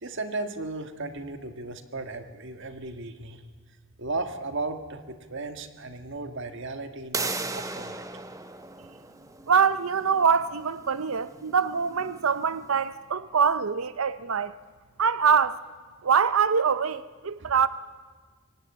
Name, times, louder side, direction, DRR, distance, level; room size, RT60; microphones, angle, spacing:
voice 1, 0.0-3.4 4.0-8.0 12.2-12.3 17.4-17.5, right 3 dB, 60° right, 1.7 m, -35 dB
sound 1, 7.1-12.7, right 3 dB, 15° right, 1.1 m, -37 dB
voice 2, 9.5-14.5 15.0-15.6 16.0-17.7, right 6 dB, 90° right, 0.7 m, -24 dB
23.5 x 17.5 x 8.7 m
head